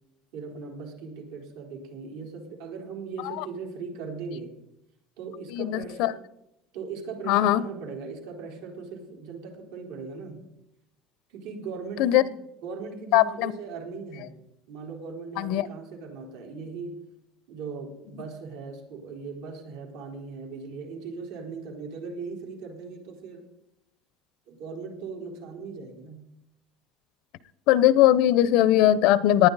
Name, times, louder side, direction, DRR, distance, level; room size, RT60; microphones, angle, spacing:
voice 1, 0.3-4.5 5.2-6.2 6.7-10.4 11.3-12.3 12.6-14.4 14.7-17.0 17.5-23.5 24.5-26.3, right 4 dB, 85° right, 1 dB, 4.1 m, -39 dB
voice 2, 5.5-6.1 7.3-7.6 12.0-12.2 13.1-13.5 15.4-15.7 27.7-29.5, left 13 dB, 65° left, 18 dB, 0.7 m, -20 dB
19.0 x 11.0 x 4.0 m, 0.84 s
cardioid pair, 160°, 0 cm